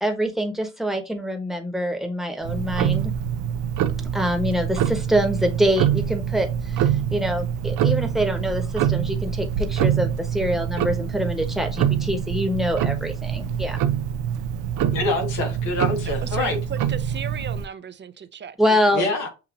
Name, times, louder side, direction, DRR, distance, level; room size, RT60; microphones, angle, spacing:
voice 1, 0.0-3.1 4.1-13.8 18.6-19.1, equal, ahead, 1.1 m, -25 dB
Tick-tock, 2.4-17.7, right 9 dB, 85° right, 0.5 m, -25 dB
voice 2, 14.9-16.6 18.9-19.3, left 2 dB, 85° left, 1.5 m, -25 dB
voice 3, 16.1-18.8 19.1-19.3, right 7 dB, 40° right, 0.6 m, -36 dB
6.8 x 2.7 x 2.5 m
cardioid pair, 90°, 30 cm